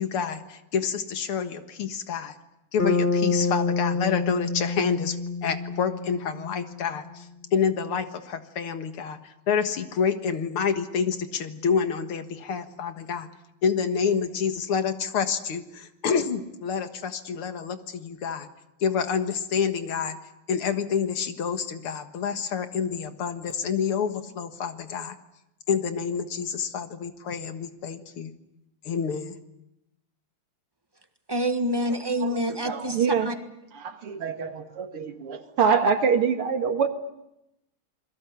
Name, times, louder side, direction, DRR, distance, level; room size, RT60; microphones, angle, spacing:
voice 1, 0.0-2.3 2.7-5.2 5.4-13.3 13.6-18.5 18.8-20.2 20.5-25.2 25.7-28.3 28.8-29.4, left 6 dB, 80° left, 2.5 m, -28 dB
Bass guitar, 2.8-6.9, left 4 dB, 20° left, 2.1 m, -27 dB
voice 2, 31.3-33.0 33.2-33.3, equal, 10° right, 1.4 m, -26 dB
voice 3, 32.2-33.3 33.7-36.9, right 6 dB, 85° right, 2.8 m, -25 dB
28.0 x 22.0 x 8.3 m
omnidirectional pair, 2.4 m